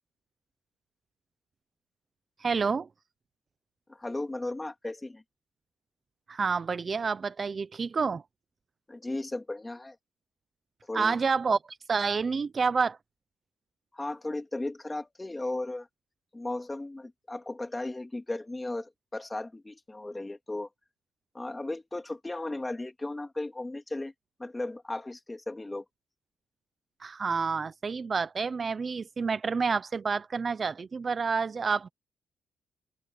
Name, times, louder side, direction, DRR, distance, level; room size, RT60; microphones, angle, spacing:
voice 1, 2.4-2.9 6.3-8.2 10.9-11.6 11.9-13.0 27.0-31.9, right 5 dB, 35° right, 0.8 m, -28 dB
voice 2, 3.9-5.2 8.9-10.0 10.9-11.2 13.9-15.9 16.3-20.7 21.3-24.1 24.4-25.8, left 2 dB, 15° left, 3.2 m, -36 dB
cardioid pair, 90°, 0 cm